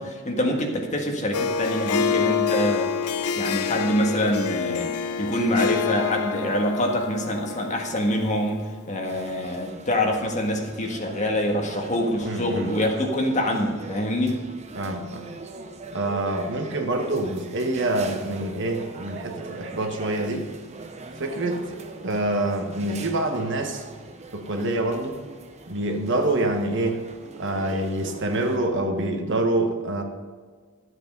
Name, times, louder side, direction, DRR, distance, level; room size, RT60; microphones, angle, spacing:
voice 1, 0.0-2.9 3.4-4.9 5.2-14.4, left 1 dB, 35° left, 2 dB, 1.6 m, -25 dB
Harp, 1.3-8.8, left 6 dB, 90° left, 0.7 m, -27 dB
sound 1, 9.0-28.6, right 3 dB, 30° right, 0.9 m, -41 dB
voice 2, 12.2-12.7 14.7-15.2 15.9-20.5 21.1-23.8 24.3-25.1 25.7-27.1 27.4-30.0, right 2 dB, 55° right, 4 dB, 1.4 m, -26 dB
12.5 x 8.1 x 5.4 m, 1.5 s
head